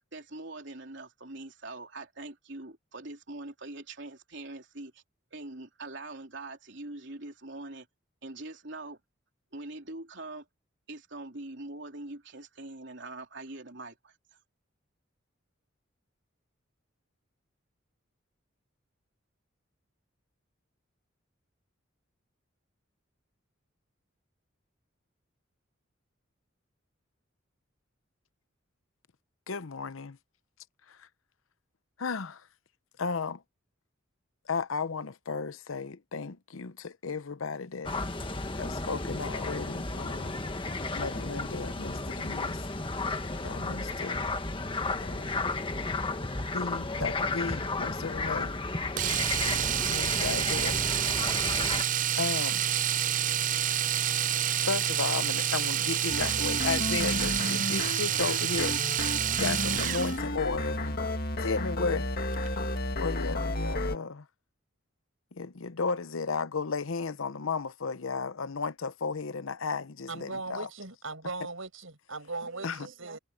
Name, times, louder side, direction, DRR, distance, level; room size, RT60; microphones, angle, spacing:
voice 1, 0.0-5.0 5.3-7.9 8.2-9.0 9.5-10.5 10.9-14.1 72.4-73.2, right 2 dB, 60° right, 3.7 m, -43 dB
voice 2, 29.5-30.2 32.0-32.4 33.0-33.4 34.5-37.9 38.6-40.4 40.9-42.6 43.4-44.2 45.0-45.3 46.5-48.5 49.4-50.8 52.2-52.6 54.6-58.8 59.4-61.0 61.4-62.1 62.9-64.2 65.4-70.7 72.6-72.9, left 4 dB, 90° left, 0.8 m, -34 dB
sound 1, 37.8-51.8, left 3 dB, 25° left, 1.5 m, -33 dB
Domestic sounds home sounds, 49.0-60.2 62.3-62.5 62.8-62.9, right 10 dB, 40° right, 0.5 m, -28 dB
sound 2, 56.1-64.0, left 1 dB, 50° left, 1.9 m, -32 dB
voice 3, 70.1-73.2, right 3 dB, 85° right, 6.7 m, -39 dB
head